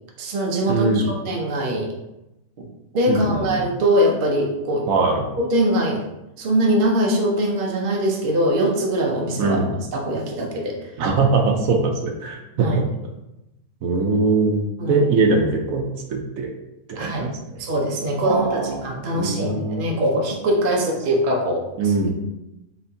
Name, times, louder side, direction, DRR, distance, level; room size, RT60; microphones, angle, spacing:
voice 1, 0.2-1.9 2.6-2.7 2.9-4.9 5.4-6.0 6.4-10.9 12.5-12.8 14.8-15.1 17.0-17.3 17.6-21.7, right 1 dB, 55° right, 0 dB, 0.6 m, -22 dB
voice 2, 0.7-1.1 3.1-3.6 4.9-5.2 9.4-9.7 11.0-12.8 13.8-15.8 16.1-16.5 16.9-17.3 18.2-18.8 19.1-19.8 21.8-22.1, right 3 dB, 70° right, 2 dB, 1.0 m, -21 dB
4.3 x 3.9 x 2.7 m, 0.91 s
omnidirectional pair, 1.6 m